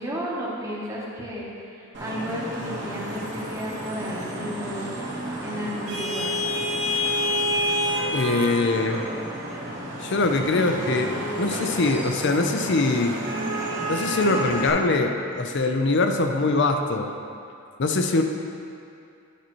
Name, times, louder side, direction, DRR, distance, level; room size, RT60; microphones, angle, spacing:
voice 1, 0.0-4.9 5.4-6.4, equal, 15° right, -5 dB, 1.1 m, -33 dB
Vehicle horn car horn honking / Traffic noise roadway noise, 1.9-14.7, equal, 55° right, 1.6 m, -29 dB
voice 2, 8.1-9.0 10.0-13.1 13.9-17.1 17.8-18.2, left 3 dB, 55° left, 5 dB, 0.5 m, -23 dB
10.0 x 5.6 x 3.1 m, 2.5 s
head